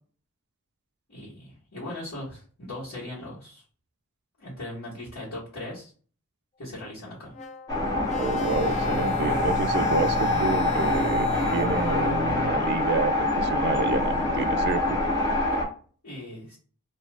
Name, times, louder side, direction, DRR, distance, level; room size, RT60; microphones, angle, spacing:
voice 1, 1.1-3.6 4.4-5.9 6.6-7.3 16.0-16.6, left 1 dB, 75° left, -10 dB, 1.2 m, -39 dB
sound 1, 7.3-12.4, left 9 dB, 30° left, 0.3 m, -37 dB
sound 2, 7.7-15.7, left 2 dB, 15° left, 0.8 m, -25 dB
voice 2, 8.2-15.0, right 4 dB, 50° right, 10 dB, 0.3 m, -29 dB
2.4 x 2.3 x 3.2 m, 0.42 s
head